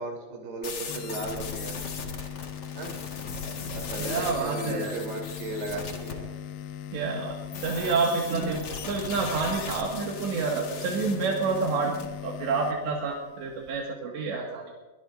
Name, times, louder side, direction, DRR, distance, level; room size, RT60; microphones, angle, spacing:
voice 1, 0.0-1.8 2.7-3.0 3.7-6.3 7.6-8.0, right 2 dB, 65° right, 0 dB, 5.5 m, -36 dB
sound 1, 0.6-6.1 7.5-12.1, left 4 dB, 45° left, 2.1 m, -38 dB
sound 2, 0.9-13.8, left 9 dB, 75° left, 2.7 m, -40 dB
voice 2, 4.0-5.0 6.9-7.4 7.6-14.7, right 4 dB, 80° right, -2 dB, 4.3 m, -28 dB
23.0 x 21.5 x 2.7 m, 1.2 s
omnidirectional pair, 5.0 m